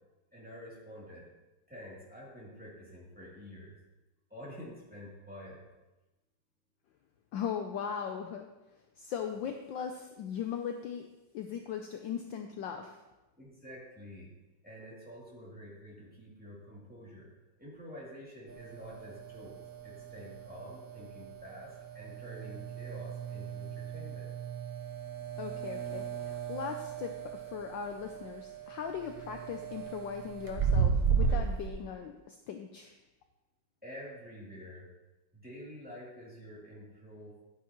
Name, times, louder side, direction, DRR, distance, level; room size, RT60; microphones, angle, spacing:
voice 1, 0.3-1.3 1.7-3.8 4.3-5.7 13.4-14.3 14.6-17.3 17.6-19.6 19.8-24.3 33.8-34.9 35.3-37.3, equal, 5° right, -6 dB, 2.7 m, -48 dB
voice 2, 7.3-8.5 9.0-11.1 11.3-13.0 25.4-32.9, left 7 dB, 70° left, 5 dB, 1.2 m, -39 dB
sound 1, 18.5-31.7, right 6 dB, 60° right, 0.5 m, -35 dB
11.5 x 9.3 x 3.0 m, 1.1 s
omnidirectional pair, 2.4 m